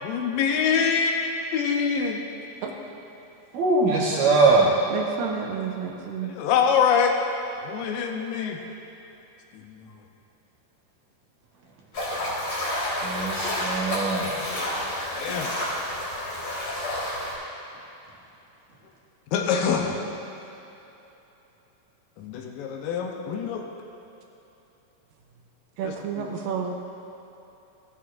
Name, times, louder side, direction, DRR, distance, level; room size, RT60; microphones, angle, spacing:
voice 1, 0.0-2.2 6.2-7.2 7.6-8.6 9.5-9.8 15.2-15.5 19.3-20.0 22.2-23.7 25.8-26.3, left 6 dB, 80° left, 2 dB, 2.4 m, -25 dB
voice 2, 3.5-4.7 13.0-14.3, right 3 dB, 65° right, -4 dB, 2.1 m, -21 dB
voice 3, 4.9-6.3 25.8-26.7, right 7 dB, 80° right, 2 dB, 2.3 m, -30 dB
sound 1, 11.9-17.3, left 1 dB, 45° left, 2.4 m, -29 dB
15.5 x 8.4 x 2.5 m, 3.0 s
omnidirectional pair, 4.1 m